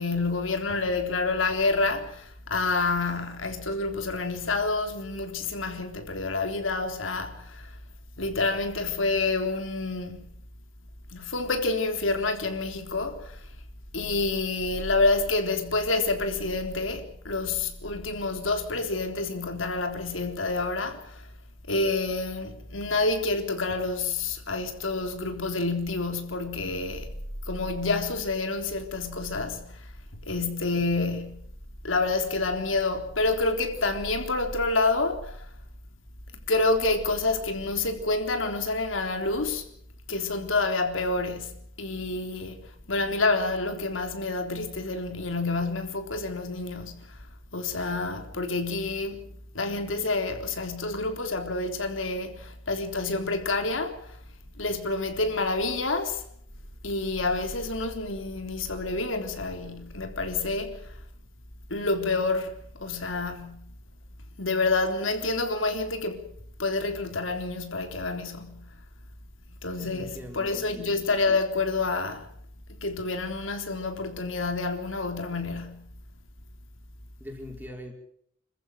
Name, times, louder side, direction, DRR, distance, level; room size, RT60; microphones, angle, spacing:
voice 1, 0.0-7.8 8.2-10.3 11.1-13.4 13.9-21.3 21.7-27.2 27.5-29.8 30.2-31.4 31.8-35.5 36.5-39.7 40.1-47.2 47.5-49.2 49.5-54.2 54.6-56.2 56.8-60.9 61.7-63.7 64.4-66.2 66.6-68.7 69.6-72.3 72.8-75.9, left 3 dB, 75° left, 3.6 m, -28 dB
voice 2, 69.8-70.9 77.2-77.9, left 1 dB, 10° right, 5.6 m, -42 dB
27.5 x 15.0 x 9.1 m
head